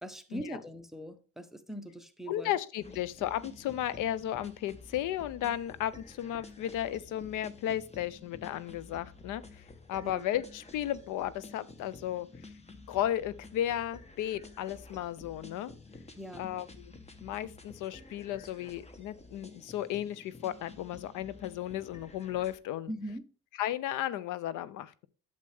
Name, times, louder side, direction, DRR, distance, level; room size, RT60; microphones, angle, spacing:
voice 1, 0.0-2.5 2.8-3.0 10.0-10.3 16.2-16.5 22.9-23.3, equal, ahead, 0.9 m, -41 dB
voice 2, 2.3-12.5 12.9-15.7 16.4-22.9 23.6-25.1, left 12 dB, 90° left, 0.6 m, -34 dB
sound 1, 2.8-22.6, left 3 dB, 20° left, 1.1 m, -51 dB
8.4 x 6.7 x 3.4 m
cardioid pair, 90°, 30 cm